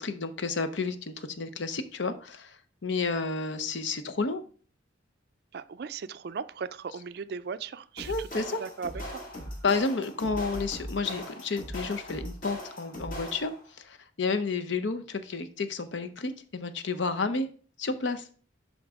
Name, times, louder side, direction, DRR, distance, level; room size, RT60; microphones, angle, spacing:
voice 1, 0.0-4.4 8.1-8.6 9.6-13.5 13.8-17.5 17.8-18.2, left 4 dB, 70° left, 10 dB, 0.7 m, -31 dB
voice 2, 5.5-9.2, right 5 dB, 55° right, 14 dB, 0.3 m, -38 dB
sound 1, 8.0-13.7, equal, 45° left, 1.8 m, -40 dB
11.0 x 3.9 x 3.5 m, 0.43 s
head